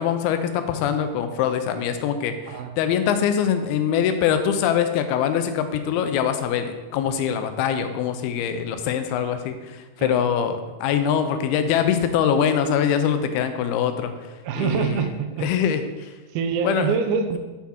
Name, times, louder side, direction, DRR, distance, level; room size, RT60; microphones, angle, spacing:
voice 1, 0.0-15.1 15.4-16.2 16.6-16.9, left 8 dB, 85° left, 8 dB, 2.5 m, -23 dB
voice 2, 10.0-10.4 14.4-15.5 16.3-17.4, right 6 dB, 80° right, 6 dB, 2.4 m, -25 dB
7.3 x 5.9 x 4.3 m, 1.2 s
omnidirectional pair, 4.4 m